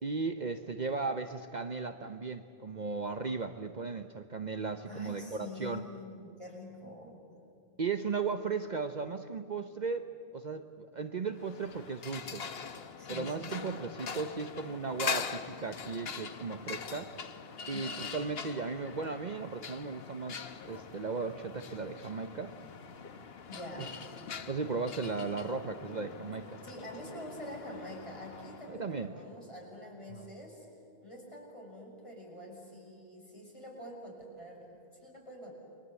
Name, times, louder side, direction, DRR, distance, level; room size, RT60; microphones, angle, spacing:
voice 1, 0.0-5.8 7.8-12.5 13.1-17.1 17.7-22.5 23.8-23.9 24.5-26.6 28.7-29.1 30.1-30.3, right 4 dB, 45° right, 7 dB, 0.9 m, -36 dB
voice 2, 4.8-7.2 13.0-13.8 17.7-18.0 23.5-23.9 26.6-30.7 31.0-34.7 35.0-35.5, left 1 dB, 30° left, -2 dB, 6.5 m, -46 dB
sound 1, 11.3-28.8, left 6 dB, 75° left, 1.3 m, -43 dB
29.0 x 23.0 x 8.3 m, 2.6 s
omnidirectional pair, 1.0 m